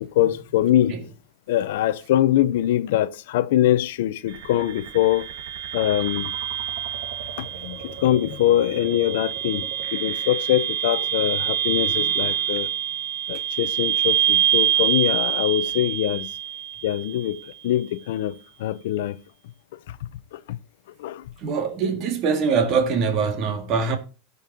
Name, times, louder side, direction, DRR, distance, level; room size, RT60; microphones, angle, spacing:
voice 1, 0.0-1.0 1.5-5.3 5.7-6.3 7.4-12.7 13.3-16.3 16.8-19.2 19.9-20.6 21.0-21.3, left 13 dB, 75° left, 0.6 m, -23 dB
sound 1, 4.3-17.3, right 10 dB, 70° right, 1.6 m, -26 dB
voice 2, 21.4-24.0, right 5 dB, 40° right, 2.0 m, -23 dB
16.0 x 5.4 x 2.8 m
supercardioid pair, 150°, 0 cm